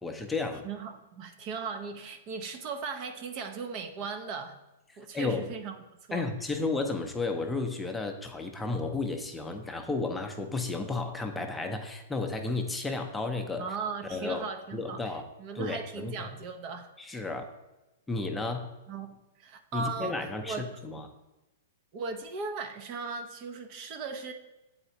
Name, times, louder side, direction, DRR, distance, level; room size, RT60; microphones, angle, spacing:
voice 1, 0.0-0.6 5.1-5.5 6.1-13.7 14.1-14.4 14.7-15.3 15.5-16.3 17.0-17.5 18.1-18.7 19.7-21.1, left 3 dB, 10° left, 4 dB, 0.6 m, -33 dB
voice 2, 0.6-4.6 5.0-5.8 6.1-6.3 13.6-16.9 18.9-19.1 19.4-20.9 21.9-24.3, right 5 dB, 45° right, 6 dB, 0.6 m, -37 dB
7.8 x 4.2 x 2.8 m, 1.0 s
hypercardioid pair, 120°, 0 cm